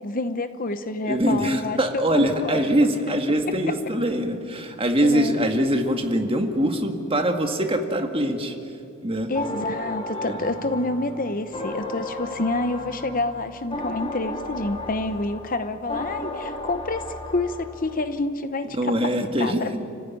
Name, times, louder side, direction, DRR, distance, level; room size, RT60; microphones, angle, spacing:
voice 1, 0.0-2.9 5.0-5.3 9.3-19.1 19.4-19.8, left 2 dB, 40° left, 10 dB, 0.9 m, -28 dB
voice 2, 1.1-8.6 9.0-9.3 10.1-10.4 18.7-19.8, right 1 dB, 25° right, 4 dB, 1.9 m, -23 dB
sound 1, 9.3-18.1, left 1 dB, 25° left, 2.8 m, -34 dB
30.0 x 15.5 x 9.7 m, 2.8 s
head